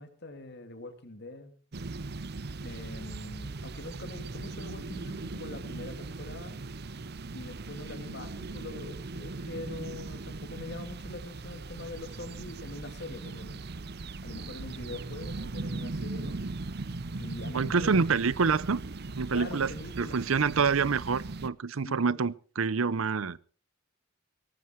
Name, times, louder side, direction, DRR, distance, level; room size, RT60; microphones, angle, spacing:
voice 1, 0.0-1.5 2.6-6.6 7.3-13.7 14.2-16.4 17.2-18.0 19.3-20.2 21.7-22.2, left 2 dB, 55° left, 2.7 m, -43 dB
sound 1, 1.7-21.5, right 3 dB, 55° right, 0.7 m, -39 dB
voice 2, 17.5-18.8 19.1-19.7 20.0-23.4, right 5 dB, 85° right, 0.7 m, -27 dB
18.0 x 15.0 x 4.6 m
head